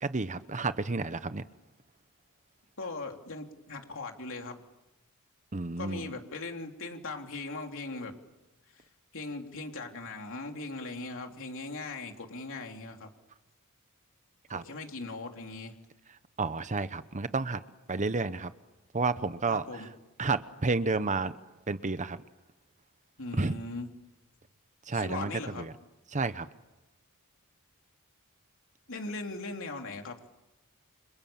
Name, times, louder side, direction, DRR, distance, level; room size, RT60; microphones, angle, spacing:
voice 1, 0.0-1.4 5.5-6.1 14.5-14.6 16.4-17.6 17.9-18.5 18.9-19.8 20.2-21.3 21.7-22.2 23.4-23.6 24.9-25.7 26.1-26.5, right 3 dB, 35° right, 13 dB, 0.9 m, -31 dB
voice 2, 2.8-4.6 5.8-8.2 9.1-13.1 14.5-15.7 19.5-19.9 23.2-23.9 24.9-25.7 28.9-30.2, left 3 dB, 65° left, 3 dB, 3.3 m, -39 dB
29.5 x 27.0 x 7.2 m, 1.0 s
head